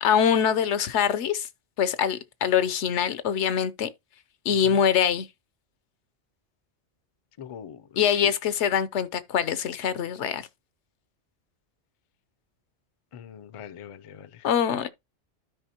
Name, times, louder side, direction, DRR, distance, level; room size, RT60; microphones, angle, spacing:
voice 1, 0.0-1.5 1.8-3.9 4.5-5.3 8.0-10.4 14.4-14.9, left 8 dB, 85° left, 1.0 m, -24 dB
voice 2, 7.4-8.3 13.1-14.4, left 8 dB, 45° left, 0.4 m, -43 dB
12.5 x 5.0 x 2.8 m
omnidirectional pair, 1.1 m